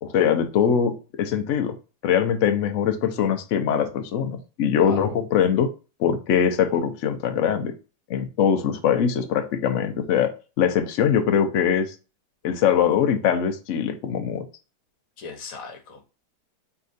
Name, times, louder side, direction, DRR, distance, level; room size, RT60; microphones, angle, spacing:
voice 1, 0.0-1.7 2.0-5.7 6.0-7.7 8.1-10.3 10.6-11.9 12.4-14.5, left 8 dB, 90° left, 0.6 m, -22 dB
voice 2, 4.8-5.1 15.2-16.0, left 3 dB, 55° left, 1.2 m, -37 dB
4.6 x 3.3 x 2.6 m
omnidirectional pair, 2.0 m